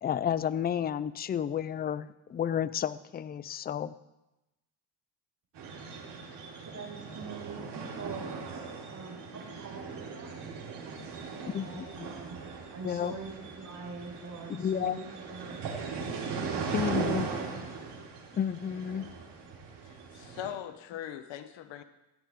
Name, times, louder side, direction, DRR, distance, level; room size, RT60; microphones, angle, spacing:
voice 1, 0.0-3.9 11.5-12.1 12.8-13.1 14.5-15.0 16.7-17.3 18.3-19.1, left 9 dB, 25° left, 16 dB, 0.4 m, -31 dB
sound 1, 5.5-20.5, right 5 dB, 65° right, 4.5 m, -39 dB
voice 2, 6.7-8.4 8.9-12.4 12.7-13.3 13.6-15.6 16.4-17.5, right 4 dB, 40° right, -1 dB, 5.5 m, -44 dB
voice 3, 19.8-21.8, left 11 dB, 80° left, 10 dB, 1.1 m, -41 dB
16.5 x 16.0 x 3.7 m, 0.99 s
cardioid pair, 110°, 44 cm